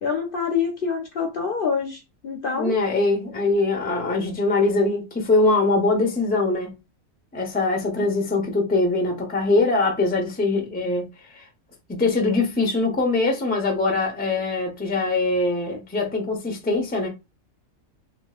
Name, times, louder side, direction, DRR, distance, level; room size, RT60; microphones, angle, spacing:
voice 1, 0.0-2.8, left 6 dB, 55° left, 0.7 m, -26 dB
voice 2, 2.6-6.7 7.3-11.1 11.3-11.4 11.9-17.1, left 3 dB, 10° left, 0.5 m, -22 dB
3.1 x 2.9 x 2.3 m
omnidirectional pair, 1.3 m